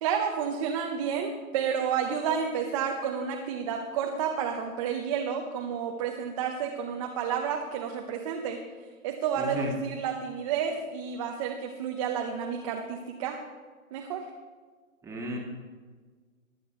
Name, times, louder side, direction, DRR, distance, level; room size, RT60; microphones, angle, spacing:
voice 1, 0.0-8.6 9.0-13.4 13.9-14.3, right 7 dB, 25° right, 1 dB, 0.8 m, -30 dB
voice 2, 9.4-9.7 15.0-15.4, equal, 5° right, -1 dB, 1.8 m, -33 dB
20.5 x 9.7 x 3.1 m, 1.5 s
hypercardioid pair, 145°, 42 cm